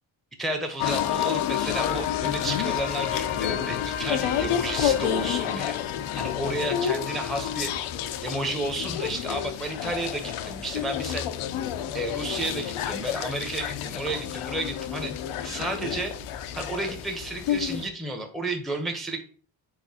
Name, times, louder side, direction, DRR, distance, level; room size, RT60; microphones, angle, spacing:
voice 1, 0.4-5.8 6.2-7.7 8.2-11.3 11.9-15.1 15.4-16.1 16.5-19.2, right 2 dB, ahead, 4 dB, 0.7 m, -32 dB
sound 1, 0.8-17.9, left 10 dB, 80° left, 0.6 m, -29 dB
4.8 x 4.1 x 2.7 m, 0.43 s
cardioid pair, 70°, 49 cm